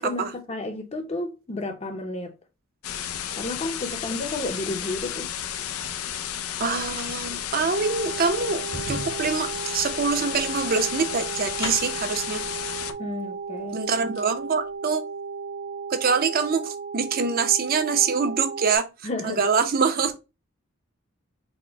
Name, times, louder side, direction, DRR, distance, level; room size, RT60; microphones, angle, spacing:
voice 1, 0.0-2.3 3.4-5.3 13.0-13.8 19.0-19.5, left 2 dB, 30° left, 0.6 m, -32 dB
sound 1, 2.8-12.9, left 9 dB, 85° left, 0.5 m, -32 dB
sound 2, 5.7-6.0 6.7-12.1 13.1-13.2 13.6-14.4 14.7-14.8, left 2 dB, 65° left, 1.0 m, -40 dB
voice 2, 6.6-12.4 13.7-15.0 15.9-18.8 19.2-20.1, right 5 dB, 45° right, 0.5 m, -25 dB
sound 3, 7.7-18.8, right 5 dB, 75° right, 1.0 m, -35 dB
4.2 x 2.0 x 4.4 m
head